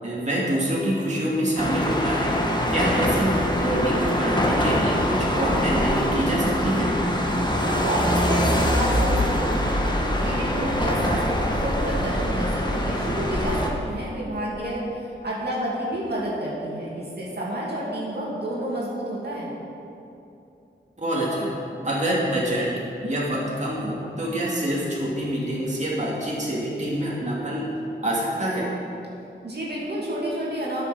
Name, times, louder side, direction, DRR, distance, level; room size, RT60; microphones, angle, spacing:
voice 1, 0.0-2.3 2.7-6.9 21.0-21.5 21.8-27.7 28.0-28.7, right 1 dB, 35° right, -5 dB, 2.6 m, -26 dB
sound 1, 1.6-13.7, equal, 20° left, 1.6 m, -23 dB
voice 2, 7.6-9.3 10.1-19.5 29.4-30.8, right 1 dB, 55° right, -6 dB, 2.7 m, -29 dB
9.6 x 6.8 x 7.0 m, 2.8 s
cardioid pair, 45°, 20 cm